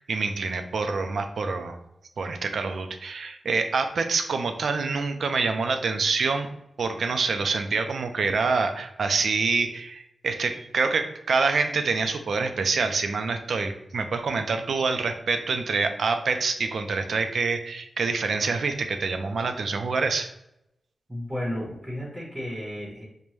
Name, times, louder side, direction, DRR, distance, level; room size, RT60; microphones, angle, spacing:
voice 1, 0.1-1.8 2.2-6.5 6.8-20.3, right 4 dB, 75° right, 7 dB, 0.4 m, -26 dB
voice 2, 21.1-23.0, equal, 15° right, -4 dB, 0.9 m, -33 dB
5.2 x 2.2 x 3.0 m, 0.84 s
wide cardioid pair, 110°, 0 cm